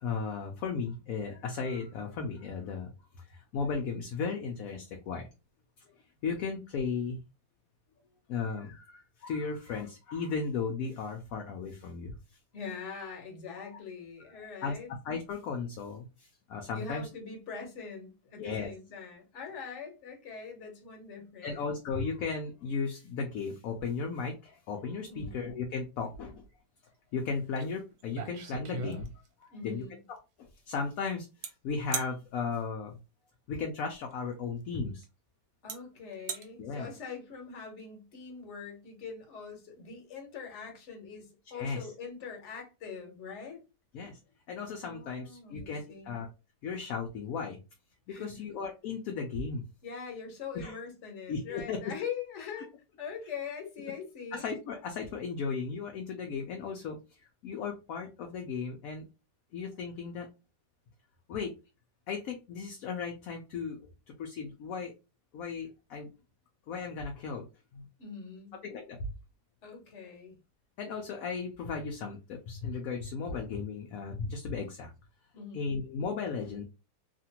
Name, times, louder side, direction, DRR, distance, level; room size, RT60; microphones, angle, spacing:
voice 1, 0.0-2.9 3.2-5.3 6.2-7.2 8.3-12.1 14.6-14.8 15.0-17.1 18.4-18.7 21.4-26.4 27.1-29.1 29.4-29.8 30.4-33.0 33.5-35.0 36.6-36.9 41.5-41.9 43.9-44.2 44.5-46.3 46.6-47.6 48.1-49.6 50.5-50.8 51.3-51.8 54.3-57.0 57.4-59.0 59.5-60.3 61.3-61.5 62.1-64.9 65.3-66.1 66.7-67.5 67.7-67.9 68.6-69.1 70.8-74.9 75.5-76.6, left 5 dB, 70° left, 0.9 m, -35 dB
voice 2, 12.5-14.9 16.7-21.8 25.1-25.4 29.5-30.0 35.6-43.6 44.8-46.2 48.1-48.4 49.8-52.7 53.0-54.5 68.0-68.6 69.6-70.3 75.3-75.6, left 6 dB, 50° left, 1.1 m, -43 dB
sound 1, 27.6-27.7 28.0-29.4 31.4-31.5 31.9-32.1 34.0-34.1 35.0-35.1 35.7-35.8 36.1-36.4, right 6 dB, 70° right, 1.1 m, -37 dB
2.8 x 2.5 x 2.8 m
omnidirectional pair, 1.8 m